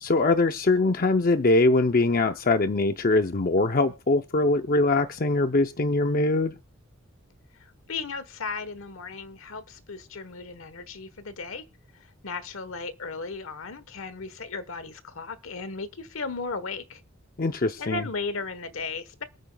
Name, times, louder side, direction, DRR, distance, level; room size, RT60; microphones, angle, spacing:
voice 1, 0.0-6.6 17.4-18.0, left 2 dB, 40° left, 0.6 m, -22 dB
voice 2, 7.6-11.7 11.9-17.0 17.8-19.2, left 4 dB, 70° left, 1.2 m, -36 dB
27.0 x 9.1 x 2.3 m
head